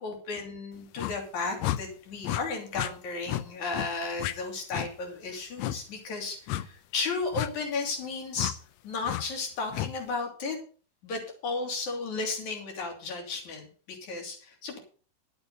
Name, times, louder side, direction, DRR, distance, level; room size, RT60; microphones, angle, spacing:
voice 1, 0.0-8.6 8.8-10.6 11.0-14.8, left 4 dB, 60° left, 2 dB, 4.4 m, -34 dB
sound 1, 1.0-1.2 1.6-1.8 2.2-2.4 2.7-2.9 3.3-3.4 3.7-3.9 4.2-4.3 4.7-4.9 5.6-5.8 6.5-6.7 7.3-7.5 8.4-8.5 9.1-9.2 9.7-9.9, left 14 dB, 80° left, 1.6 m, -31 dB
11.5 x 9.0 x 5.5 m, 0.41 s
omnidirectional pair, 3.9 m